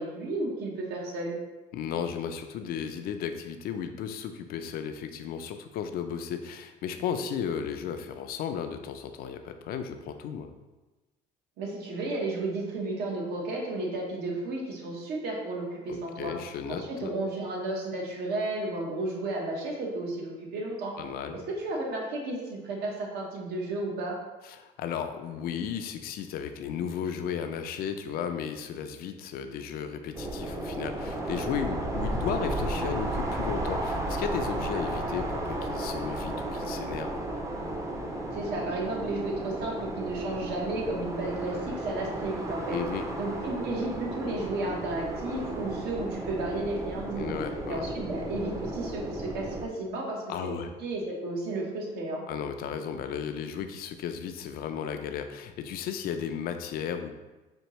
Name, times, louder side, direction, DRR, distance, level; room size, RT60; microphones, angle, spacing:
voice 1, 0.0-1.4 11.6-16.3 16.7-20.9 21.3-24.2 38.3-42.8 43.2-47.3 47.7-52.2, right 2 dB, 75° right, -1 dB, 1.0 m, -33 dB
voice 2, 1.7-10.5 15.9-17.1 21.0-21.4 24.4-37.1 42.7-43.1 47.2-47.9 50.3-50.7 52.3-57.1, left 8 dB, 60° left, 8 dB, 0.4 m, -34 dB
sound 1, 30.1-49.7, right 1 dB, 20° right, 0.5 m, -33 dB
4.3 x 2.7 x 3.0 m, 1.1 s
cardioid pair, 105°, 17 cm